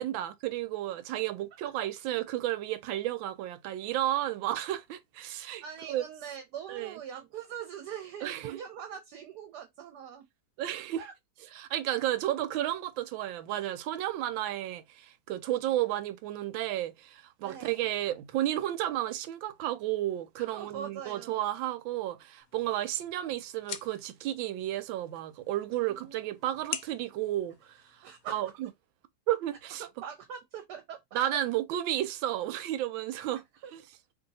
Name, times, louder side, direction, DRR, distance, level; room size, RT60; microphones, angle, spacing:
voice 1, 0.0-5.6 5.9-6.0 6.7-7.0 8.2-8.6 10.6-11.0 11.5-28.7 29.3-29.8 31.1-33.4 33.7-33.8, right 13 dB, 90° right, 1.4 m, -32 dB
voice 2, 5.6-10.2 11.0-11.1 17.4-17.9 20.4-21.4 25.7-26.3 28.0-28.5 29.8-31.2 33.6-33.7, right 8 dB, 70° right, 1.1 m, -43 dB
sound 1, 22.4-28.4, left 9 dB, 70° left, 0.8 m, -45 dB
2.9 x 2.8 x 3.9 m
omnidirectional pair, 2.1 m